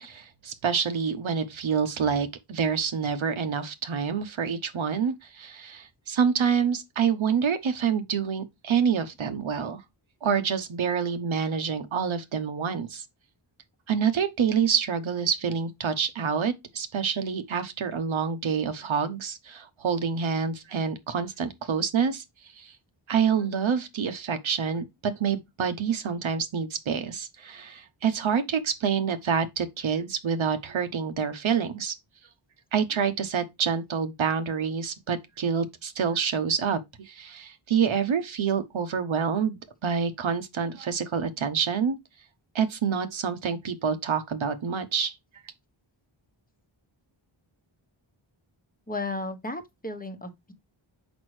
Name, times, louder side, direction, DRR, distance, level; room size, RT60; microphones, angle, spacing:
voice 1, 0.0-9.8 10.2-13.0 13.9-22.2 22.6-22.7 23.1-31.9 32.7-42.0 42.5-45.1, right 6 dB, 70° right, 0.9 m, -27 dB
voice 2, 48.9-50.5, left 2 dB, 20° left, 1.0 m, -34 dB
6.2 x 5.1 x 3.2 m
wide cardioid pair, 120°, 48 cm